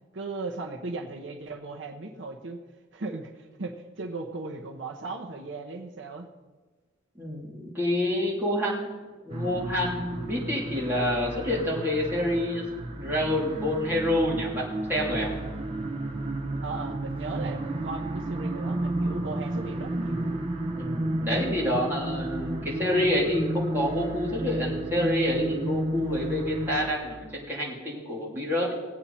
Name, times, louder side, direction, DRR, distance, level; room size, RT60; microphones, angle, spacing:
voice 1, 0.1-2.6 2.9-6.3 16.6-20.4, right 3 dB, 70° right, 2 dB, 1.0 m, -37 dB
voice 2, 7.2-8.9 9.2-12.6 13.0-14.6 14.9-15.3 20.7-28.7, left 1 dB, 10° right, -6 dB, 3.4 m, -27 dB
sound 1, 9.3-26.9, right 1 dB, 30° right, 1.1 m, -32 dB
18.0 x 8.6 x 4.3 m, 1.3 s
head